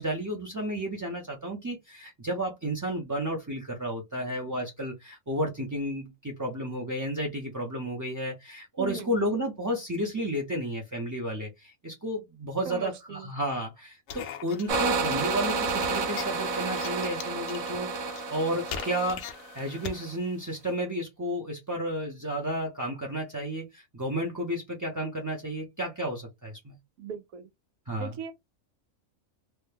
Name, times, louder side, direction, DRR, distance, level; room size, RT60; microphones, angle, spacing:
voice 1, 0.0-19.2 19.5-26.8 27.9-28.1, equal, 25° right, 0.4 m, -32 dB
voice 2, 8.8-9.2 12.7-13.3 27.0-27.5 28.0-28.3, right 6 dB, 90° right, 1.2 m, -38 dB
sound 1, 14.1-20.0, left 7 dB, 65° left, 0.8 m, -41 dB
sound 2, 14.7-20.1, right 4 dB, 65° right, 1.0 m, -31 dB
3.0 x 2.2 x 3.3 m
omnidirectional pair, 1.4 m